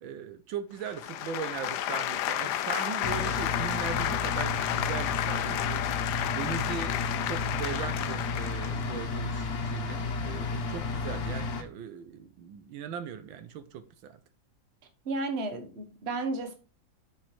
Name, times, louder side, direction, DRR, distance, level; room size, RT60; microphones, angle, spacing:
voice 1, 0.0-14.2, right 8 dB, 80° right, 1.6 m, -39 dB
sound 1, 0.8-8.9, left 12 dB, 70° left, 1.0 m, -32 dB
sound 2, 3.0-11.6, left 3 dB, 55° left, 1.5 m, -33 dB
voice 2, 15.0-16.5, right 2 dB, 35° right, 1.4 m, -32 dB
6.7 x 6.5 x 4.6 m
omnidirectional pair, 2.1 m